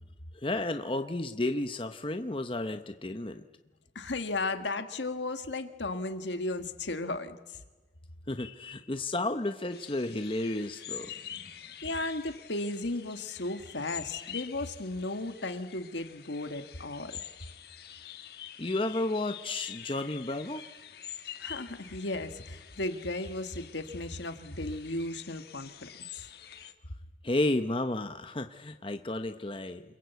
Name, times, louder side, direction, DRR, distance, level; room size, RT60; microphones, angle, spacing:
voice 1, 0.4-3.4 8.3-11.1 18.6-20.6 27.2-29.8, left 2 dB, 30° left, 7 dB, 0.9 m, -32 dB
voice 2, 4.0-7.6 11.8-17.2 21.4-26.3, left 2 dB, 75° left, 8 dB, 1.8 m, -35 dB
sound 1, 9.7-26.7, left 10 dB, 55° left, 1.7 m, -46 dB
28.5 x 22.0 x 8.2 m, 1.2 s
head